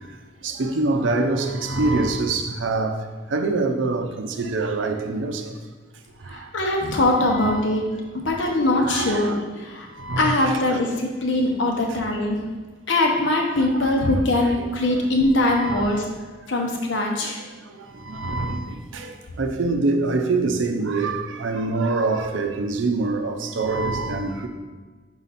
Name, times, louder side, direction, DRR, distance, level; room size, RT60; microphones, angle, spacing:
voice 1, 0.4-3.0 3.3-5.5 6.3-6.4 7.3-7.6 8.8-9.4 10.0-10.8 13.6-15.0 15.5-16.0 18.0-24.5, right 3 dB, 85° right, 0.6 m, -25 dB
voice 2, 6.3-9.9 10.2-12.4 12.9-16.0 16.5-17.4, left 1 dB, 75° left, 0.9 m, -22 dB
5.7 x 4.0 x 4.1 m
head